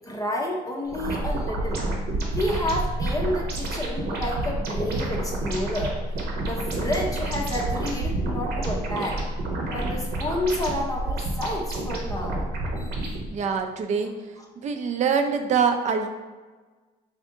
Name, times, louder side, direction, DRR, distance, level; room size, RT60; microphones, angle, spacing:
voice 1, 0.0-1.8 2.3-6.0 6.4-9.2 9.7-12.4 12.8-13.1, left 1 dB, 20° left, -1 dB, 0.6 m, -30 dB
sound 1, 0.9-13.3, right 2 dB, 70° right, 0.9 m, -29 dB
voice 2, 13.3-14.1 14.6-16.1, right 6 dB, 45° right, 6 dB, 0.5 m, -24 dB
3.5 x 2.7 x 3.7 m, 1.3 s
cardioid pair, 110°, 17 cm